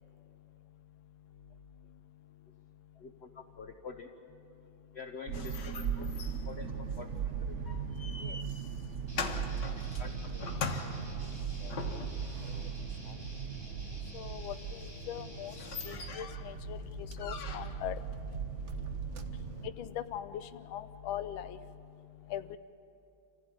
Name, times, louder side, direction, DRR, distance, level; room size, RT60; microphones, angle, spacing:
voice 1, 2.9-4.1 4.9-7.6 9.7-10.7, left 4 dB, 45° left, 5 dB, 1.0 m, -47 dB
sound 1, 5.3-12.4 14.7-14.8 15.2-15.3 15.4-16.5 17.2-17.9, left 4 dB, 60° left, 2.0 m, -42 dB
sound 2, 5.3-19.7, right 7 dB, 55° right, 0.9 m, -39 dB
sound 3, 9.1-15.9, equal, 10° right, 6.4 m, -49 dB
voice 2, 14.1-14.5 15.1-15.5 15.9-16.8 17.2-17.9 19.8-20.3 20.7-21.6 22.3-22.6, left 11 dB, 85° left, 11 dB, 1.5 m, -39 dB
27.0 x 15.5 x 8.8 m, 2.6 s
omnidirectional pair, 2.2 m